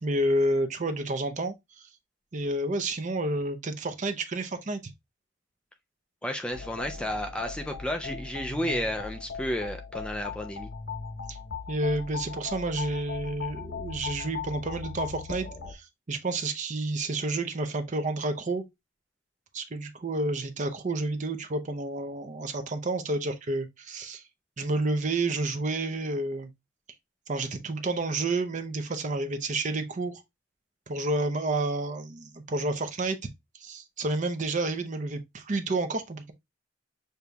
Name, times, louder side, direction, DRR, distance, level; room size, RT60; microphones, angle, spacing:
voice 1, 0.0-1.9 2.3-4.8 11.3-11.4 11.7-18.6 19.5-24.2 24.6-26.5 27.3-30.2 30.9-33.2 33.6-36.3, right 2 dB, 40° right, 0.6 m, -30 dB
voice 2, 6.2-10.7, equal, 5° left, 0.3 m, -32 dB
sound 1, 6.5-15.7, left 5 dB, 80° left, 1.0 m, -38 dB
6.6 x 2.8 x 2.3 m
head